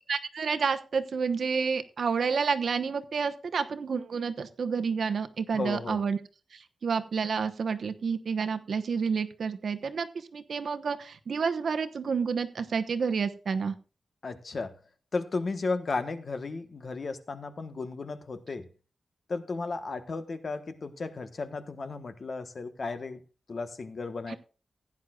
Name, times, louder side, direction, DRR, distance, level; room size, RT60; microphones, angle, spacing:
voice 1, 0.1-6.2 6.8-13.7 24.3-24.4, right 5 dB, 65° right, 1.0 m, -29 dB
voice 2, 5.5-6.0 14.2-14.7 15.1-18.6 19.3-23.2 23.5-24.4, left 3 dB, 45° left, 1.2 m, -34 dB
16.0 x 9.9 x 2.4 m
wide cardioid pair, 165°, 0 cm